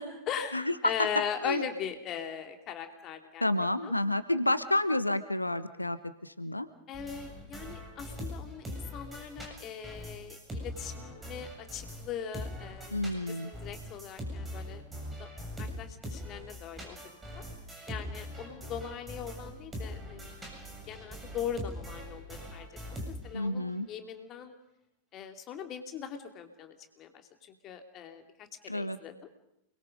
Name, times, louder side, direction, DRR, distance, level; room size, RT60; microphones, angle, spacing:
voice 1, 0.0-3.5 3.8-3.9 6.9-13.0 13.3-14.8 15.2-15.3 15.6-17.0 17.4-17.5 17.9-20.3 20.9-22.7 23.0-24.5 25.1-27.2 27.5-28.5 28.7-29.3, left 8 dB, 35° left, 5 dB, 2.8 m, -39 dB
voice 2, 3.4-6.7 12.9-13.5 23.3-23.9 28.7-29.0, left 1 dB, 85° left, 13 dB, 1.1 m, -30 dB
sound 1, 6.9-12.1 12.3-23.5, equal, 15° right, 7.4 m, -42 dB
29.5 x 22.0 x 5.4 m, 0.80 s
figure-of-eight pair, 90°, 0 cm